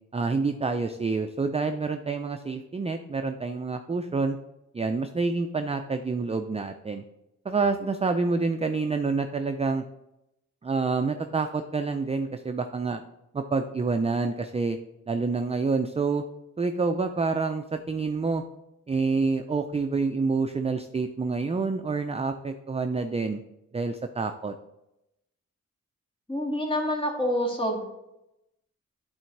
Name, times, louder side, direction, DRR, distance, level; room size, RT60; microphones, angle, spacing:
voice 1, 0.1-4.4 4.7-7.0 7.4-9.8 10.6-13.0 13.3-14.8 15.1-16.2 16.6-18.4 18.9-23.4 23.7-24.5, right 4 dB, 20° right, 6 dB, 0.4 m, -27 dB
voice 2, 26.3-27.8, equal, 15° left, 0 dB, 2.0 m, -27 dB
11.5 x 3.9 x 4.6 m, 0.89 s
wide cardioid pair, 120°, 30 cm